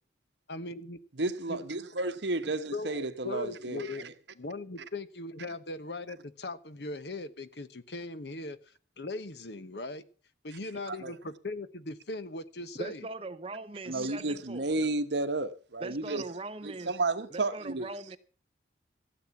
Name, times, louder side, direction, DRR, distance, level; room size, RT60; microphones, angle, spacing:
voice 1, 0.5-1.6 2.7-4.1 4.3-8.6 9.0-10.0 10.4-13.1, left 2 dB, 70° left, 1.1 m, -39 dB
voice 2, 1.2-4.1 10.9-11.1 13.9-16.2 16.6-17.9, right 2 dB, 75° right, 1.2 m, -32 dB
voice 3, 12.8-14.8 15.8-16.9 17.3-18.2, right 3 dB, 30° right, 0.8 m, -40 dB
15.5 x 8.1 x 7.2 m
head